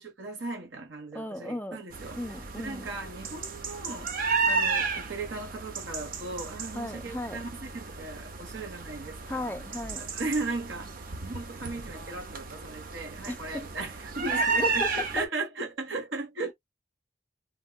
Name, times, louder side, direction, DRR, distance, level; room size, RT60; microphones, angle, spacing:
voice 1, 0.0-2.2 2.6-9.5 10.0-10.9 11.2-16.5, right 3 dB, 70° right, 1.1 m, -37 dB
voice 2, 1.1-1.8 2.2-2.9 6.7-7.4 9.3-10.1 13.3-13.7 14.3-15.1, left 1 dB, 10° left, 0.3 m, -36 dB
sound 1, 1.9-15.3, right 4 dB, 45° right, 0.5 m, -33 dB
3.5 x 2.2 x 2.2 m
head